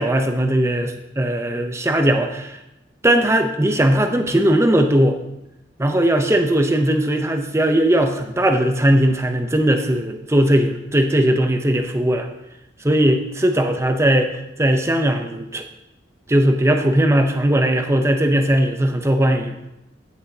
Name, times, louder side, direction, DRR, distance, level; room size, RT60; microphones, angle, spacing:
voice 1, 0.0-2.6 3.0-5.2 5.8-12.3 12.8-14.3 14.6-15.6 16.3-19.7, right 1 dB, 15° right, 6 dB, 0.6 m, -18 dB
14.5 x 6.7 x 2.8 m, 0.92 s
head